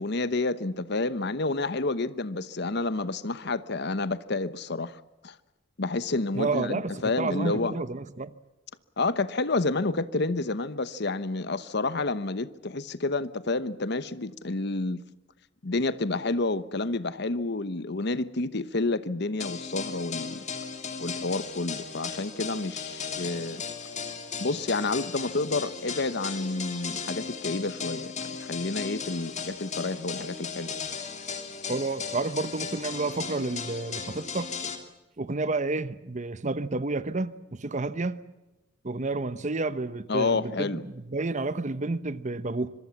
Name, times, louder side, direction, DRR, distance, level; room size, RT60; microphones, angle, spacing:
voice 1, 0.0-5.3 5.8-7.8 9.0-15.0 15.6-20.4 21.0-23.6 24.4-28.1 28.4-30.7 40.1-40.8, left 3 dB, 60° left, 1.0 m, -29 dB
voice 2, 6.3-8.3 31.7-34.5 35.2-38.2 38.8-42.7, right 3 dB, 40° right, 0.9 m, -30 dB
sound 1, 19.4-34.8, left 6 dB, 40° left, 3.1 m, -36 dB
25.5 x 23.0 x 7.2 m
head